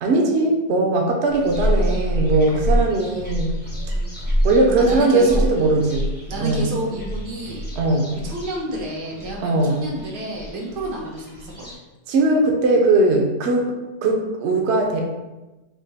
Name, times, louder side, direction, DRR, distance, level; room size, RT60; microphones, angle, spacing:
voice 1, 0.0-3.5 4.4-6.1 6.4-6.6 7.7-8.1 9.4-9.8 12.1-13.7 14.0-15.0, right 2 dB, 60° right, 1 dB, 0.7 m, -19 dB
sound 1, 1.3-11.7, equal, 10° left, 0.4 m, -27 dB
voice 2, 4.8-5.8 6.3-7.6 8.1-11.5, right 1 dB, 85° right, -2 dB, 1.4 m, -30 dB
3.7 x 2.3 x 4.0 m, 1.1 s
omnidirectional pair, 1.8 m